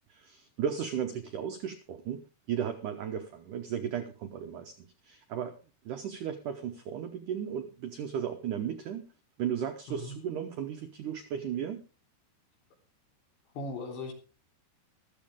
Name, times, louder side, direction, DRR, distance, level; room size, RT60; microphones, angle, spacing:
voice 1, 0.1-5.6 5.9-9.1 9.4-11.8, right 8 dB, 80° right, 7 dB, 1.8 m, -35 dB
voice 2, 13.5-14.1, left 2 dB, 80° left, 2 dB, 5.7 m, -38 dB
14.0 x 13.5 x 3.6 m, 0.33 s
omnidirectional pair, 5.0 m